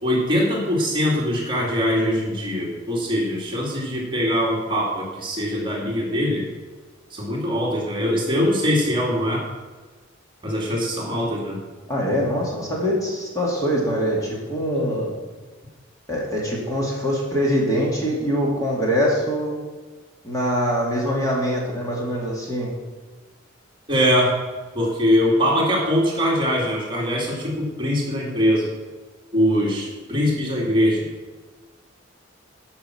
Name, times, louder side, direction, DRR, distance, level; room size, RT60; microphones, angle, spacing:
voice 1, 0.0-6.5 7.1-9.4 10.4-11.6 23.9-24.4 24.7-28.7 29.3-31.1, equal, 25° right, -3 dB, 2.4 m, -22 dB
voice 2, 11.9-15.1 16.1-19.5 20.2-22.7, equal, 20° left, -3 dB, 2.6 m, -23 dB
14.0 x 5.9 x 5.9 m, 1.3 s
head